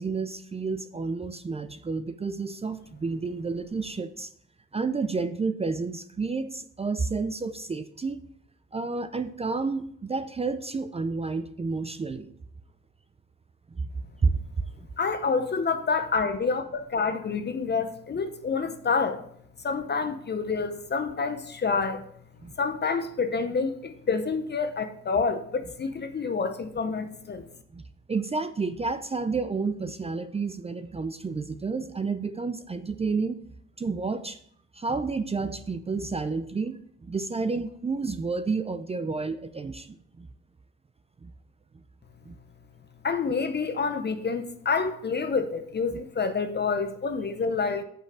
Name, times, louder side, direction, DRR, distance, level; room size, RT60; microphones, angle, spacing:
voice 1, 0.0-4.3 4.7-8.2 8.7-12.3 13.7-13.8 14.2-14.3 14.8-14.9 22.4-22.5 27.7-27.8 28.1-33.4 33.8-34.4 34.7-40.3 41.2-41.3 42.3-42.4, right 4 dB, 20° right, 11 dB, 0.5 m, -30 dB
voice 2, 15.0-19.2 19.6-22.1 22.6-27.5 43.0-47.8, left 4 dB, 35° left, 9 dB, 0.7 m, -28 dB
6.2 x 5.5 x 6.3 m, 0.67 s
cardioid pair, 80°, 31 cm